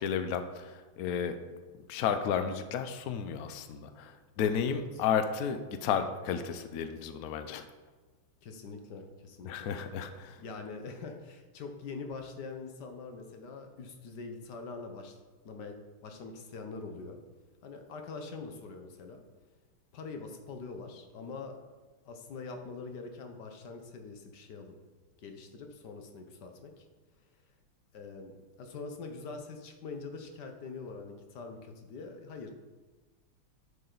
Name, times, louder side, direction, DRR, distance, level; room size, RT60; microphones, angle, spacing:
voice 1, 0.0-1.4 1.9-7.7 9.4-10.4, left 7 dB, 80° left, 8 dB, 0.8 m, -32 dB
voice 2, 4.7-5.0 8.4-9.7 10.4-15.2 15.4-17.2 17.6-19.2 19.9-21.6 22.0-24.8 25.2-26.8 27.9-32.5, left 4 dB, 60° left, 5 dB, 1.4 m, -44 dB
11.0 x 6.7 x 4.0 m, 1.3 s
omnidirectional pair, 2.4 m